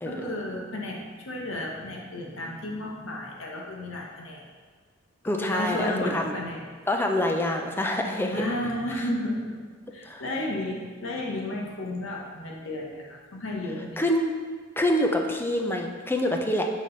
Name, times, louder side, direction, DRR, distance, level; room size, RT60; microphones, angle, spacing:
voice 1, 0.1-4.5 5.4-6.6 8.3-14.0, left 1 dB, 85° left, -1 dB, 1.1 m, -33 dB
voice 2, 5.2-6.3 6.9-8.5 10.1-10.2 14.0-14.3 14.8-16.6, left 1 dB, 10° left, 3 dB, 0.5 m, -26 dB
5.7 x 4.9 x 4.0 m, 1.5 s
head